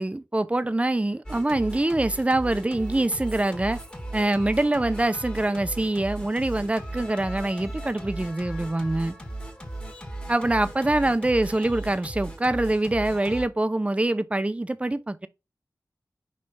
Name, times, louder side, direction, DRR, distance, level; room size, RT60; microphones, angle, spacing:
voice 1, 0.0-3.8 4.1-9.1 10.3-15.3, right 2 dB, 20° right, 0.6 m, -24 dB
Singing, 1.3-13.5, right 1 dB, 15° left, 1.4 m, -37 dB
5.2 x 3.3 x 5.5 m
wide cardioid pair, 75°, 7 cm